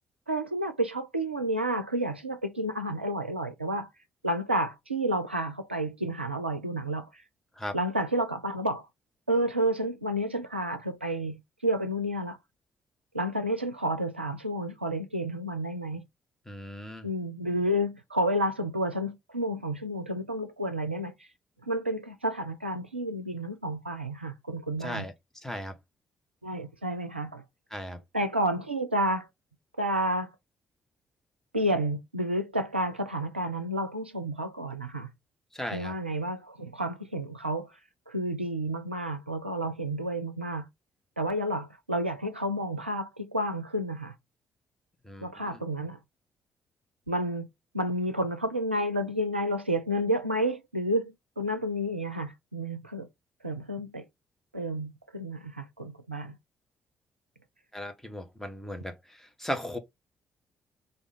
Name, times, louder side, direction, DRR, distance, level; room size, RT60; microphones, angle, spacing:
voice 1, 0.3-3.9 4.2-7.2 7.7-8.9 9.3-12.4 13.1-16.1 17.0-21.1 21.7-25.1 26.4-27.4 28.1-29.3 29.8-30.3 31.5-35.1 35.7-37.7 38.1-40.7 41.2-44.1 45.2-46.0 47.1-47.5 47.7-53.1 53.4-54.0 54.5-56.4, right 1 dB, 90° right, 0.4 m, -30 dB
voice 2, 16.5-17.1 24.8-25.1 25.4-25.8 27.7-28.0 35.5-36.0 45.0-45.6 57.7-59.8, equal, 5° left, 1.0 m, -37 dB
3.4 x 2.5 x 3.6 m
figure-of-eight pair, 40°, 6 cm